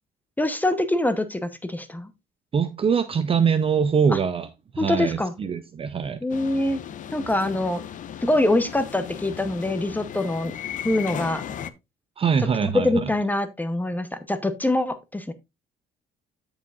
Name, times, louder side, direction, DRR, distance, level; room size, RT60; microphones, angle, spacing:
voice 1, 0.4-2.1 4.1-4.2 4.8-5.3 6.2-6.8 7.1-7.8 8.2-10.5 10.8-11.4 12.6-15.3, left 1 dB, 10° left, 0.9 m, -24 dB
voice 2, 2.5-4.5 4.7-6.2 12.2-13.1, right 6 dB, 35° right, 0.7 m, -23 dB
sound 1, 6.3-11.7, left 9 dB, 50° left, 0.7 m, -36 dB
13.5 x 4.9 x 2.5 m
cardioid pair, 110°, 17 cm